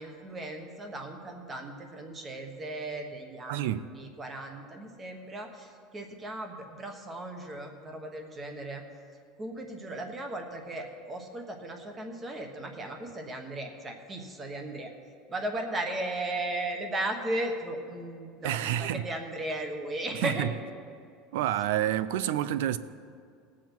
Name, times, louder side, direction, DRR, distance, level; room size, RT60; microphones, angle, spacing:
voice 1, 0.0-8.8 9.4-14.9 15.3-20.5, right 1 dB, 15° right, 1.2 m, -36 dB
voice 2, 3.5-3.9 18.4-19.0 20.1-20.5 21.3-22.8, right 12 dB, 75° right, 0.5 m, -28 dB
19.5 x 7.4 x 4.5 m
supercardioid pair, 165°, 0 cm